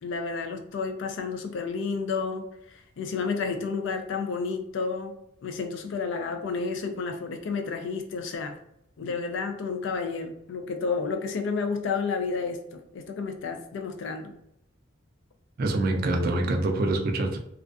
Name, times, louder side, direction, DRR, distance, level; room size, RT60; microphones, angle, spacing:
voice 1, 0.0-5.2 5.4-8.6 9.0-14.3, left 4 dB, 65° left, 6 dB, 0.3 m, -31 dB
voice 2, 15.6-17.4, right 2 dB, 50° right, 3 dB, 0.4 m, -25 dB
2.4 x 2.2 x 2.4 m, 0.78 s
head